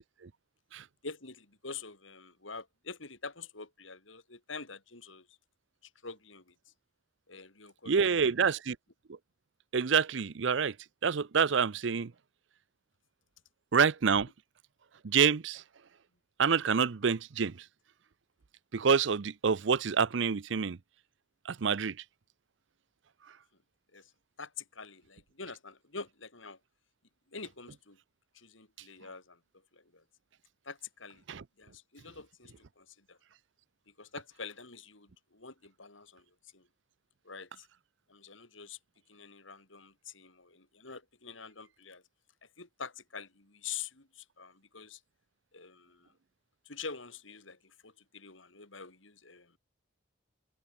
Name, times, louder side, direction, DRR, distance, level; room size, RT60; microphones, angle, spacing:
voice 1, 1.0-5.4 6.0-6.5 7.3-8.5 23.9-24.1 24.4-26.6 27.3-28.0 28.3-29.4 29.7-30.0 30.6-31.2 31.6-33.2 34.0-36.2 36.5-36.7 37.2-37.7 38.1-38.8 39.1-42.0 42.6-45.0 45.5-46.1 46.6-49.6, left 5 dB, 75° left, 4.3 m, -46 dB
voice 2, 7.9-8.8 9.7-10.7 11.0-12.1 13.7-14.3 15.0-15.6 16.4-17.5 18.7-20.8 21.5-22.0 31.3-31.4, right 6 dB, 65° right, 0.6 m, -27 dB
head